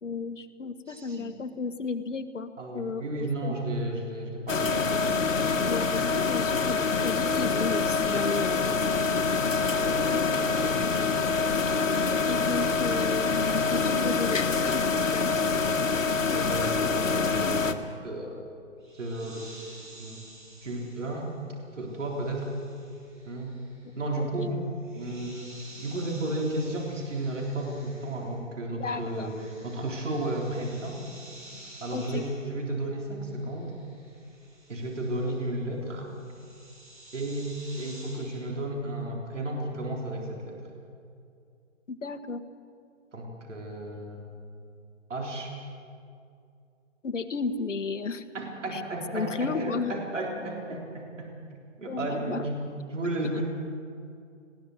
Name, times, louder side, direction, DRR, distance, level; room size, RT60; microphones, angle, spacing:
voice 1, 0.0-3.5 5.7-9.2 12.1-15.8 24.2-24.5 25.2-25.3 28.8-29.3 31.9-32.2 41.9-42.4 47.0-48.2 48.7-48.8 49.1-49.9 51.9-52.5 53.3-53.4, left 4 dB, 70° left, 8 dB, 1.5 m, -34 dB
voice 2, 0.9-1.3 2.6-4.9 9.7-10.1 10.4-11.2 16.3-18.4 19.0-19.6 20.0-20.2 20.6-21.3 21.7-22.5 23.2-23.6 24.0-24.7 24.9-31.3 31.8-33.7 34.7-36.1 37.1-40.7 43.1-44.4 45.1-45.5 48.3-51.3 51.8-53.4, right 1 dB, 70° right, 0 dB, 3.9 m, -33 dB
sound 1, 4.5-17.7, left 4 dB, 90° left, 1.6 m, -26 dB
sound 2, 18.8-28.5 28.8-38.5, right 1 dB, 40° right, 6.5 m, -52 dB
20.0 x 17.0 x 8.1 m, 2.4 s
hypercardioid pair, 165°, 38 cm